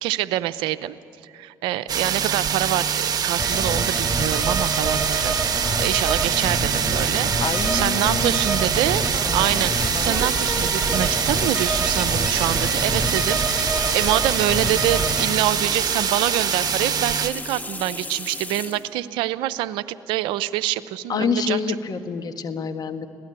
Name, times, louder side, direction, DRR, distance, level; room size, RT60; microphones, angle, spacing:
voice 1, 0.0-1.0 1.2-5.4 5.8-7.3 7.7-9.0 9.3-21.6, right 14 dB, 85° right, 14 dB, 0.6 m, -25 dB
sound 1, 1.9-17.3, right 7 dB, 50° right, 1.3 m, -24 dB
sound 2, 3.4-15.3, right 2 dB, 10° right, 3.7 m, -27 dB
voice 2, 7.4-8.5 21.1-23.1, left 6 dB, 55° left, 8 dB, 1.5 m, -27 dB
sound 3, 9.1-18.9, left 2 dB, 20° left, 2.1 m, -34 dB
25.5 x 17.0 x 8.9 m, 2.5 s
supercardioid pair, 60°, 8 cm